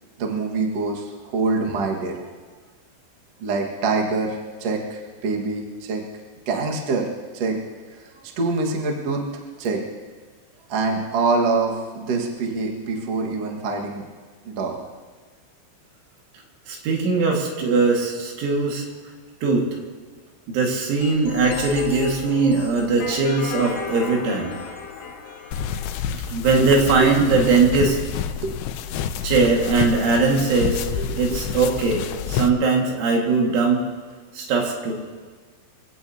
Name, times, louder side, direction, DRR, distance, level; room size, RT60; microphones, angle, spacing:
voice 1, 0.2-2.3 3.4-6.0 6.4-7.1 7.3-7.6 8.0-9.8 10.7-14.0 14.4-14.7 26.5-26.7 27.0-27.1 28.4-28.6 31.0-31.4, right 3 dB, 55° right, 0 dB, 1.8 m, -25 dB
voice 2, 16.7-18.9 19.4-19.7 20.5-24.5 26.3-28.0 29.2-30.8 31.2-33.8 34.3-34.9, right 4 dB, 80° right, 0 dB, 4.4 m, -20 dB
sound 1, 21.0-26.0, left 5 dB, 65° left, 4.6 m, -33 dB
sound 2, 25.5-32.5, left 8 dB, 90° left, 2.3 m, -28 dB
24.5 x 16.5 x 2.8 m, 1.5 s
omnidirectional pair, 5.4 m